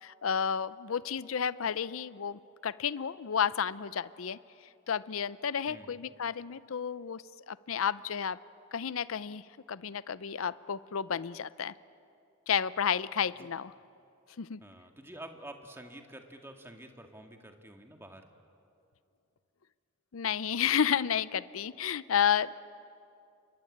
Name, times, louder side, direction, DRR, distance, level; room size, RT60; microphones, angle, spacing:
voice 1, 0.0-4.4 4.9-8.4 8.7-9.4 9.7-11.7 12.5-13.7 14.4-14.6 20.1-22.6, left 8 dB, 75° left, 17 dB, 0.5 m, -31 dB
voice 2, 5.7-6.0 13.4-13.5 14.6-18.2, right 1 dB, 10° right, 4 dB, 1.9 m, -48 dB
29.0 x 23.5 x 8.7 m, 2.6 s
head